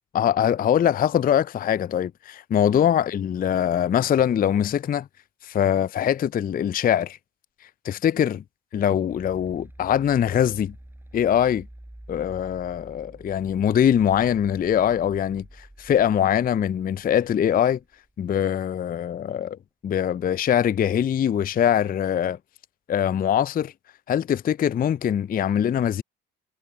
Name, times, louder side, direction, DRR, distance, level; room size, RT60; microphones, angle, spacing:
voice 1, 0.1-5.1 5.4-7.2 7.8-8.4 8.7-10.7 11.1-11.6 12.1-17.8 18.2-22.4 22.9-23.7 24.1-26.0, left 9 dB, 30° left, 0.4 m, -22 dB
sound 1, 9.1-18.2, right 1 dB, 5° right, 5.9 m, -48 dB
hypercardioid pair, 50°, 31 cm